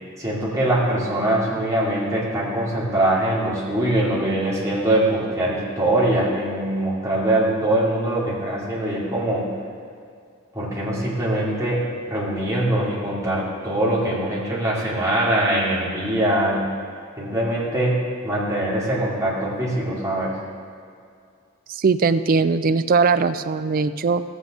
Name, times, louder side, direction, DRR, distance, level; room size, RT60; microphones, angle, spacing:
voice 1, 0.2-9.4 10.5-11.8 12.1-16.6 17.2-18.0 18.2-20.3, right 1 dB, 15° right, -7 dB, 2.6 m, -22 dB
voice 2, 21.7-24.2, right 4 dB, 45° right, 12 dB, 0.4 m, -20 dB
14.5 x 8.1 x 3.7 m, 2.3 s
head